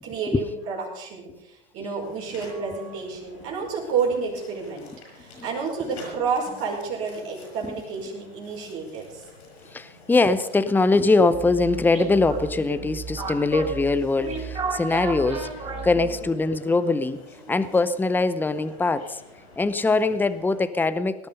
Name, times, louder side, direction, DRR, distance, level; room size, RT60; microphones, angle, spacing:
voice 1, 0.0-4.9 5.1-9.2, right 5 dB, 45° right, -1 dB, 5.4 m, -30 dB
sound 1, 2.0-20.6, left 2 dB, 85° left, 7.4 m, -48 dB
voice 2, 9.7-15.5 15.8-19.2 19.6-21.3, left 3 dB, 5° left, 13 dB, 0.7 m, -22 dB
sound 2, 11.3-16.4, right 4 dB, 20° right, 4.6 m, -33 dB
18.5 x 10.5 x 5.4 m, 0.91 s
hypercardioid pair, 100°, 31 cm